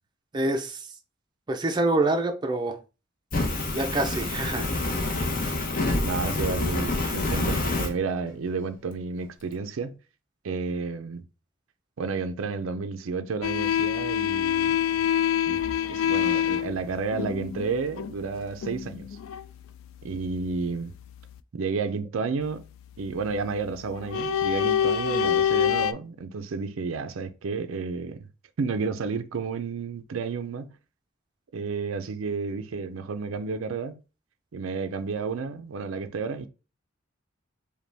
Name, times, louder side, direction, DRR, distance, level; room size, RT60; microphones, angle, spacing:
voice 1, 0.3-0.9 1.5-2.8 3.7-4.7, right 2 dB, 20° right, 0.5 m, -26 dB
Fire, 3.3-7.9, left 2 dB, 45° left, 0.8 m, -27 dB
voice 2, 6.0-10.0 10.4-11.2 12.0-14.9 15.5-15.6 15.9-19.1 20.0-20.9 21.5-22.7 23.0-28.3 28.6-30.7 31.5-34.0 34.5-36.5, right 4 dB, 80° right, 0.5 m, -31 dB
sound 1, 13.4-19.5 19.8-21.4 23.3-23.6 23.9-25.9, left 9 dB, 80° left, 0.3 m, -26 dB
5.1 x 2.3 x 3.3 m
head